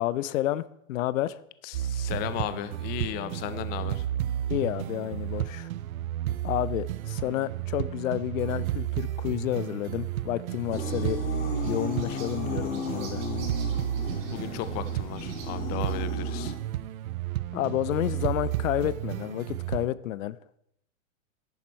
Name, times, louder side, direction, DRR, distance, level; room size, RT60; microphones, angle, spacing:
voice 1, 0.0-1.4 4.5-5.7 6.4-11.2 11.6-13.2 17.5-20.4, left 14 dB, 70° left, 18 dB, 0.7 m, -30 dB
voice 2, 1.6-4.0 14.2-16.5, left 12 dB, 25° left, 13 dB, 0.5 m, -35 dB
sound 1, 1.7-19.9, right 12 dB, 85° right, 0.6 m, -32 dB
sound 2, 10.6-15.9, right 5 dB, 45° right, 3.7 m, -49 dB
sound 3, 10.7-16.5, left 5 dB, 50° left, 3.6 m, -36 dB
11.0 x 9.4 x 4.5 m, 0.75 s
hypercardioid pair, 135°, 41 cm